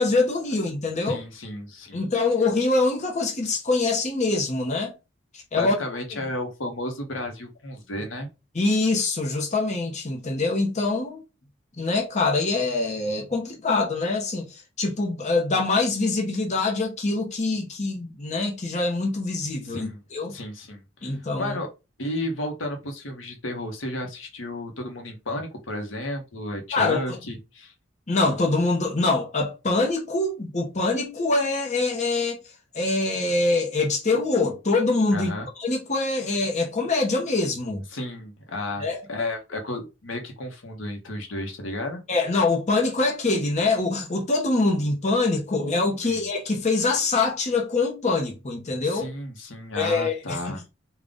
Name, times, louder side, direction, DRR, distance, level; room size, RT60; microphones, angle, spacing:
voice 1, 0.0-1.2 1.9-4.9 5.5-5.8 6.1-6.2 8.5-11.2 11.8-20.3 21.0-21.6 26.7-27.2 28.1-32.4 32.7-35.3 35.6-37.8 38.8-39.0 42.1-49.1 49.7-50.5, left 3 dB, 35° left, 0.8 m, -24 dB
voice 2, 1.1-2.0 5.5-8.3 19.6-20.0 20.3-21.7 22.0-27.7 35.1-35.5 37.9-42.0 46.0-46.3 48.9-50.6, left 1 dB, 70° left, 1.0 m, -33 dB
3.8 x 2.4 x 3.6 m
head